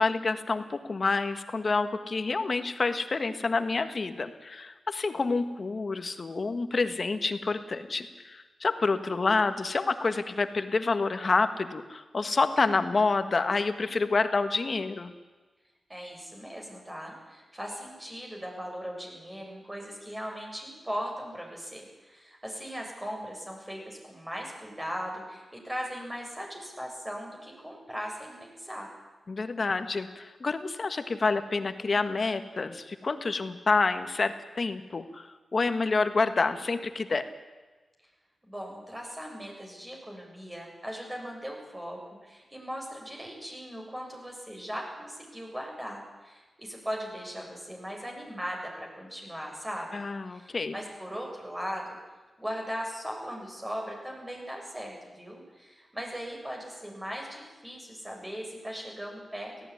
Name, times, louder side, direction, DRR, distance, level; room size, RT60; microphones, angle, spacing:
voice 1, 0.0-15.1 29.3-37.3 49.9-50.7, left 3 dB, 55° left, 10 dB, 1.6 m, -28 dB
voice 2, 15.9-28.9 38.5-49.9 50.3-52.0 52.4-59.7, equal, 15° right, 1 dB, 7.6 m, -38 dB
17.5 x 15.5 x 10.0 m, 1.3 s
cardioid pair, 50°, 0 cm